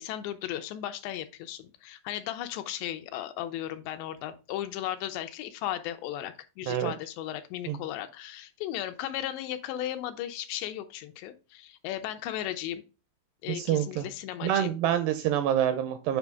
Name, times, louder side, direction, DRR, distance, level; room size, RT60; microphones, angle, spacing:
voice 1, 0.0-12.8 13.4-14.8, left 12 dB, 80° left, 8 dB, 2.6 m, -36 dB
voice 2, 13.5-14.1 14.4-16.2, right 10 dB, 80° right, 9 dB, 2.5 m, -27 dB
8.2 x 5.1 x 3.4 m, 0.33 s
omnidirectional pair, 5.3 m